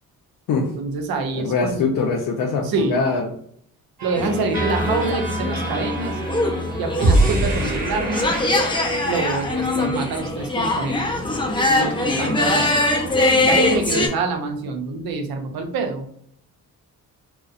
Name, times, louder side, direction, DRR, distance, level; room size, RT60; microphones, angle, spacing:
voice 1, 0.8-1.8 2.6-3.1 4.0-6.2 6.8-8.4 9.0-11.0 11.7-12.7 13.5-16.1, right 3 dB, 75° right, 5 dB, 0.6 m, -26 dB
voice 2, 1.3-3.3, left 4 dB, 65° left, 1 dB, 0.5 m, -22 dB
sound 1, 4.0-10.2, right 1 dB, 25° right, 1.0 m, -25 dB
sound 2, 4.1-14.1, left 2 dB, 15° left, 0.5 m, -22 dB
2.6 x 2.1 x 2.4 m, 0.65 s
cardioid pair, 75°, 37 cm